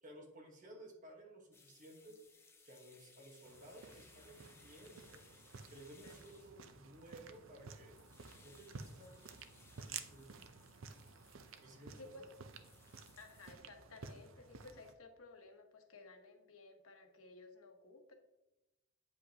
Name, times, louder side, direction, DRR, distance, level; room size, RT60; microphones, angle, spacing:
voice 1, 0.0-2.2 2.6-5.2 5.7-7.9 8.4-9.3 9.9-10.6 11.6-12.3, right 1 dB, 40° right, 1 dB, 1.2 m, -56 dB
sound 1, 1.5-13.5, left 4 dB, 10° left, 0.5 m, -66 dB
sound 2, 3.4-14.9, right 5 dB, 70° right, 0.5 m, -53 dB
voice 2, 12.0-12.3 13.2-18.1, left 3 dB, 85° left, 5 dB, 0.9 m, -56 dB
8.4 x 5.2 x 2.8 m, 0.97 s
head